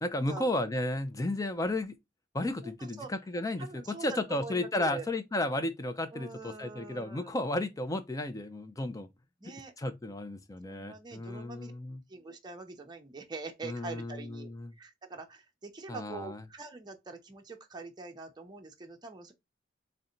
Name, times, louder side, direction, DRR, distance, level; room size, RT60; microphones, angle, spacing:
voice 1, 0.0-2.0 2.3-9.1 9.8-12.0 13.6-14.7 15.9-16.4, left 1 dB, 20° left, 0.4 m, -33 dB
voice 2, 2.6-3.1 3.6-5.1 6.1-7.4 9.4-9.7 10.7-11.7 12.1-14.5 14.8-19.3, right 3 dB, 20° right, 0.7 m, -44 dB
4.1 x 2.1 x 3.8 m
head